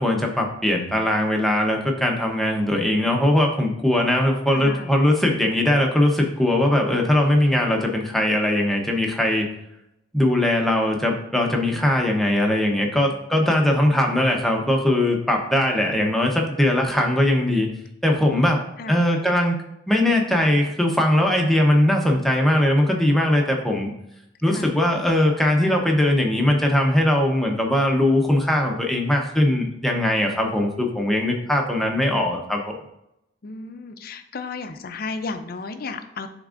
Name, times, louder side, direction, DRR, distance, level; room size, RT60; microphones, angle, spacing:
voice 1, 0.0-9.5 10.1-17.7 18.0-19.6 19.9-23.9 24.4-32.8, left 1 dB, ahead, 1 dB, 0.8 m, -20 dB
voice 2, 4.5-5.0 18.8-19.0 24.5-24.8 33.4-36.3, left 3 dB, 50° left, 9 dB, 0.5 m, -33 dB
10.5 x 3.5 x 2.5 m, 0.83 s
head